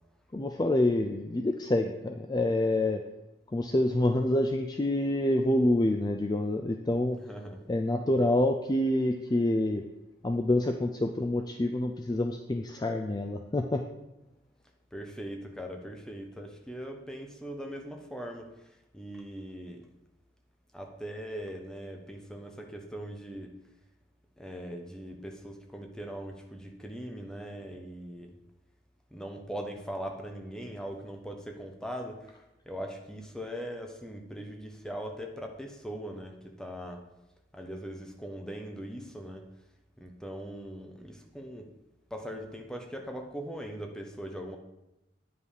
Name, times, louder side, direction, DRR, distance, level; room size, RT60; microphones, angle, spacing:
voice 1, 0.3-3.0 3.5-7.2 7.7-9.8 10.2-13.8, left 1 dB, 20° left, 5 dB, 0.4 m, -27 dB
voice 2, 7.1-7.6 14.9-19.9 20.7-23.5 24.4-28.3 29.1-37.0 37.5-39.5 40.0-41.7 42.1-44.6, equal, 5° left, 3 dB, 1.0 m, -40 dB
9.4 x 5.4 x 4.9 m, 0.91 s
head